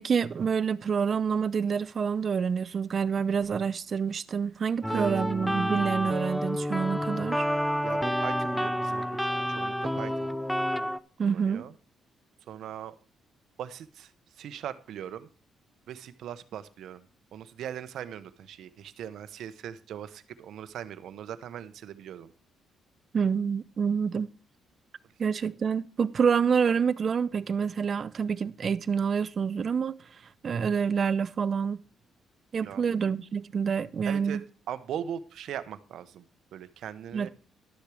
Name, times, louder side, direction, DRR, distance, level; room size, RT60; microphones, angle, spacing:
voice 1, 0.0-7.5 11.2-11.6 23.1-24.3 25.2-30.0 30.4-31.8 32.5-34.4 37.1-37.3, right 6 dB, 45° right, 0.5 m, -27 dB
sound 1, 4.8-11.0, equal, ahead, 0.5 m, -29 dB
voice 2, 7.8-10.4 11.2-11.7 12.5-13.0 13.6-15.3 15.9-17.1 17.3-22.3 32.6-32.8 34.0-34.4 34.7-37.3, right 9 dB, 75° right, 0.8 m, -40 dB
12.0 x 6.7 x 4.9 m
cardioid pair, 90°, 0 cm